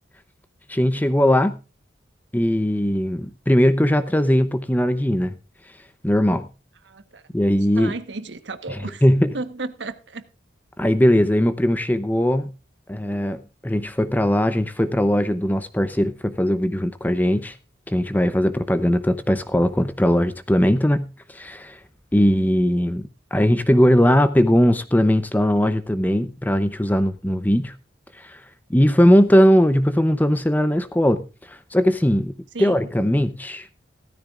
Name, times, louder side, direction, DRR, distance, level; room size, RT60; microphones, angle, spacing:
voice 1, 0.7-1.6 2.3-5.3 6.0-6.5 7.3-7.9 8.7-9.3 10.8-12.5 12.9-17.6 17.9-21.8 22.1-23.0 23.3-27.7 28.1-28.4 28.7-33.7, equal, 10° left, 0.6 m, -19 dB
voice 2, 6.9-7.2 7.8-9.0 9.3-10.2 32.5-32.7, right 3 dB, 70° right, 1.2 m, -33 dB
16.0 x 14.0 x 2.4 m
head